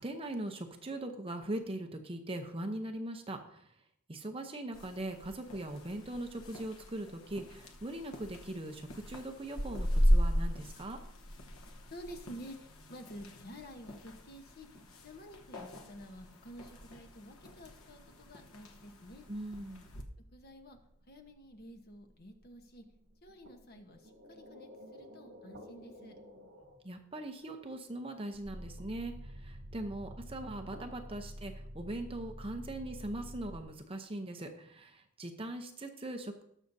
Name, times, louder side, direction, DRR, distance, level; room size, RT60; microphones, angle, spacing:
voice 1, 0.0-3.6 4.1-11.0 19.3-19.9 26.8-36.4, right 1 dB, 25° right, 5 dB, 0.7 m, -41 dB
sound 1, 4.7-20.0, equal, 75° left, 1.1 m, -36 dB
voice 2, 11.9-19.3 20.3-20.8 21.1-22.8 23.2-26.2, equal, 45° left, 4 dB, 1.1 m, -50 dB
sound 2, 19.8-26.8 28.3-33.6, equal, 70° right, 1.8 m, -49 dB
19.0 x 6.4 x 2.7 m, 0.72 s
head